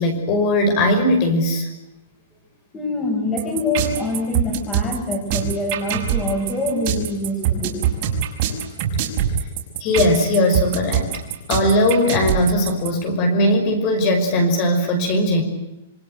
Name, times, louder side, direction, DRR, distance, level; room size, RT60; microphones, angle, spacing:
voice 1, 0.0-1.7 9.8-11.2 11.5-15.4, left 1 dB, 30° left, 5 dB, 5.8 m, -19 dB
voice 2, 2.7-7.9, left 2 dB, 10° left, 4 dB, 6.4 m, -25 dB
sound 1, 3.4-12.9, right 9 dB, 35° right, 5.9 m, -23 dB
27.0 x 25.0 x 8.0 m, 0.95 s
supercardioid pair, 175°, 0 cm